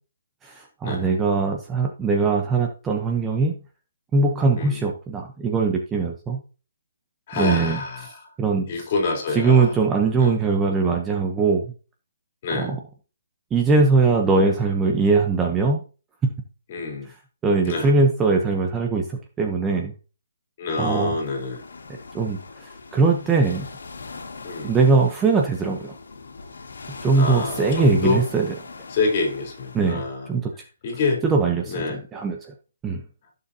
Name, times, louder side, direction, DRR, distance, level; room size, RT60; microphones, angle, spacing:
voice 1, 0.4-3.5 4.1-6.4 7.4-7.8 8.4-8.7 9.3-11.7 12.5-12.8 13.5-15.8 17.4-19.9 20.8-21.1 22.1-22.4 22.9-23.7 24.6-26.0 27.0-28.5 29.7-30.0 30.3-30.5 31.2-32.5 32.8-33.0, right 4 dB, 10° right, 2 dB, 1.0 m, -21 dB
voice 2, 7.3-8.2 8.7-9.8 10.2-10.4 12.4-12.7 16.7-17.1 17.7-17.9 20.6-21.6 24.4-24.8 27.1-28.2 28.9-30.3 30.8-31.2 31.7-32.0, left 3 dB, 35° left, 1 dB, 3.9 m, -26 dB
sound 1, 21.1-29.9, left 4 dB, 80° left, 2.1 m, -40 dB
15.0 x 6.9 x 2.9 m, 0.36 s
hypercardioid pair, 165°, 0 cm